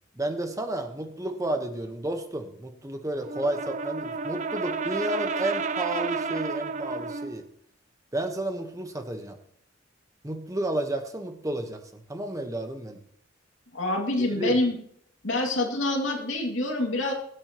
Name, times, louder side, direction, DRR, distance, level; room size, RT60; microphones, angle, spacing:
voice 1, 0.2-7.4 8.1-9.4 10.2-13.0 14.2-14.6, right 1 dB, 15° right, 5 dB, 1.2 m, -31 dB
Brass instrument, 3.2-7.4, right 4 dB, 40° right, 0.5 m, -31 dB
voice 2, 13.7-14.8 15.2-17.1, left 2 dB, 80° left, 1 dB, 2.4 m, -26 dB
22.0 x 8.1 x 3.0 m, 0.68 s
head